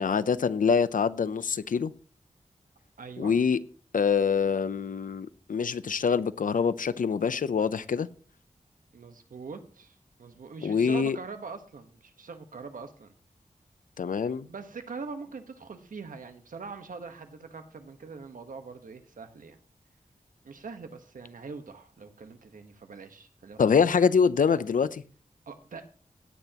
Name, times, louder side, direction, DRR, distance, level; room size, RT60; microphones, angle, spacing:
voice 1, 0.0-1.9 3.2-3.6 3.9-8.1 10.6-11.2 14.0-14.5 23.6-25.0, left 6 dB, 85° left, 0.6 m, -25 dB
voice 2, 3.0-3.3 8.9-13.1 14.5-19.6 20.4-23.8 25.5-25.8, right 4 dB, 90° right, 1.3 m, -43 dB
17.5 x 9.0 x 3.0 m
wide cardioid pair, 75°, 14 cm